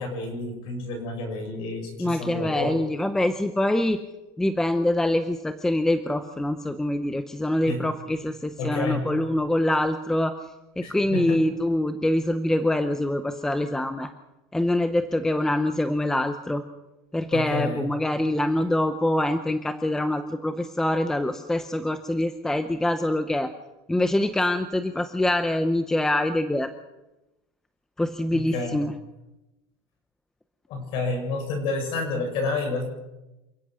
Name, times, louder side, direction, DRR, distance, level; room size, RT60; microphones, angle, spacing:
voice 1, 0.0-2.8 7.7-7.8 8.6-9.1 10.8-11.5 17.3-17.9 28.3-28.8 30.7-32.9, left 3 dB, 45° left, 3 dB, 7.6 m, -30 dB
voice 2, 2.0-4.0 4.4-10.4 10.8-14.1 14.5-16.6 17.1-23.5 23.9-26.7 28.0-28.9, left 1 dB, 5° left, 9 dB, 0.7 m, -25 dB
28.0 x 17.0 x 6.3 m, 0.99 s
cardioid pair, 175°, 12 cm